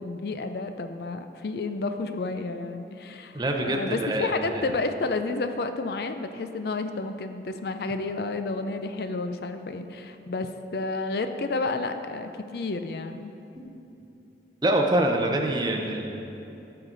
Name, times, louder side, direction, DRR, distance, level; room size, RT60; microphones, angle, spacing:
voice 1, 0.0-13.3, left 3 dB, 60° left, 8 dB, 0.4 m, -31 dB
voice 2, 3.3-4.6 13.6-13.7 14.6-16.1, right 1 dB, 25° right, 2 dB, 0.7 m, -25 dB
14.0 x 5.8 x 3.9 m, 2.9 s
head